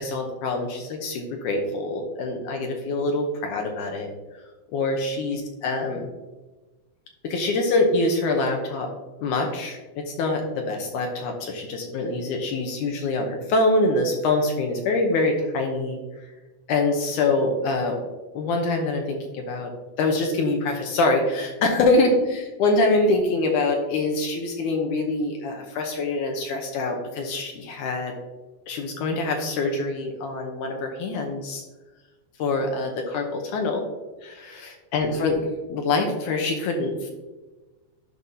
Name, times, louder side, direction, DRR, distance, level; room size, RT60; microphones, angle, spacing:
voice 1, 0.0-4.1 4.7-6.1 7.2-8.9 9.2-9.8 10.1-16.3 16.7-18.0 18.3-19.7 20.0-28.1 28.7-31.6 32.4-33.8 34.2-35.4 35.7-37.1, left 2 dB, 75° left, 2 dB, 1.9 m, -25 dB
12.5 x 5.3 x 2.8 m, 1.2 s
omnidirectional pair, 4.4 m